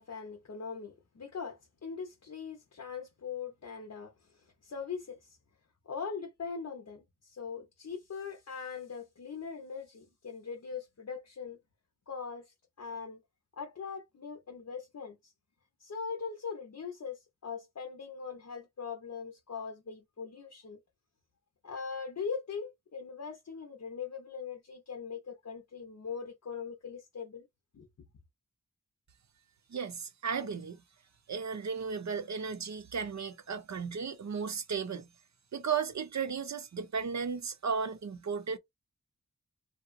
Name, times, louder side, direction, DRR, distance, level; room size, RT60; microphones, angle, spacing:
voice 1, 0.0-5.4 5.9-11.6 12.1-13.2 13.6-15.3 15.8-20.8 21.6-27.5 27.7-27.9, left 6 dB, 55° left, 0.7 m, -41 dB
voice 2, 29.7-30.8 31.3-35.1 35.5-38.6, right 6 dB, 55° right, 0.6 m, -35 dB
2.8 x 2.0 x 2.5 m
cardioid pair, 40°, 33 cm